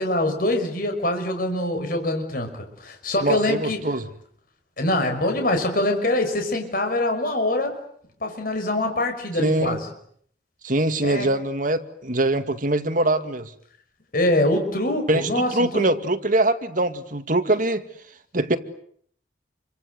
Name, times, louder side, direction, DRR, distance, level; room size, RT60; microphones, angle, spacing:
voice 1, 0.0-3.8 4.8-7.8 8.2-9.9 11.0-11.3 14.1-15.9, left 1 dB, 50° left, 5 dB, 5.9 m, -24 dB
voice 2, 3.2-4.0 9.4-9.8 10.6-13.5 15.1-17.9 18.3-18.6, right 2 dB, 45° right, 8 dB, 2.2 m, -23 dB
30.0 x 25.0 x 8.0 m, 0.65 s
head